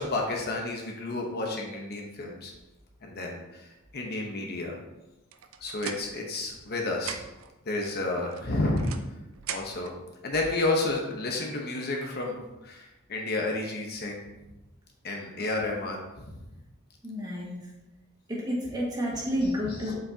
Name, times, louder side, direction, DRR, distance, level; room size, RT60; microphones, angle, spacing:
voice 1, 0.0-2.5 3.0-3.7 3.9-4.8 5.6-7.2 7.7-8.9 9.5-9.9 10.2-12.4 12.6-14.2 15.0-16.3 19.6-19.9, left 2 dB, 50° left, 0 dB, 1.0 m, -31 dB
sound 1, 5.3-6.7 6.9-7.5 8.3-10.0, right 7 dB, 75° right, 0.5 m, -40 dB
voice 2, 17.0-17.7 18.3-19.9, equal, 20° right, -4 dB, 1.8 m, -30 dB
7.5 x 5.7 x 2.8 m, 1.0 s
head